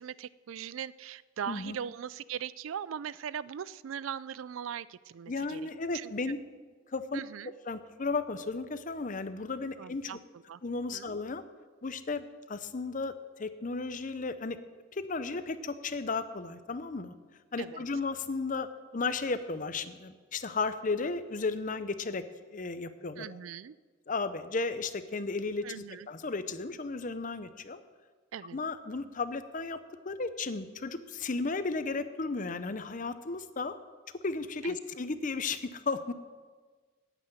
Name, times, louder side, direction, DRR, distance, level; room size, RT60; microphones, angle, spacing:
voice 1, 0.0-6.1 7.1-7.5 9.8-10.6 10.9-11.1 17.6-17.8 23.2-23.7 25.6-26.1 28.3-28.6 34.6-34.8, right 8 dB, 85° right, 19 dB, 0.4 m, -40 dB
voice 2, 5.3-6.4 6.9-7.2 7.7-10.1 10.6-11.4 11.8-13.1 13.4-14.6 14.9-17.1 17.5-18.7 18.9-22.2 22.5-23.4 24.1-27.8 28.5-29.8 30.0-33.7 34.2-36.1, left 3 dB, 40° left, 12 dB, 0.7 m, -34 dB
9.7 x 9.1 x 9.0 m, 1.4 s
head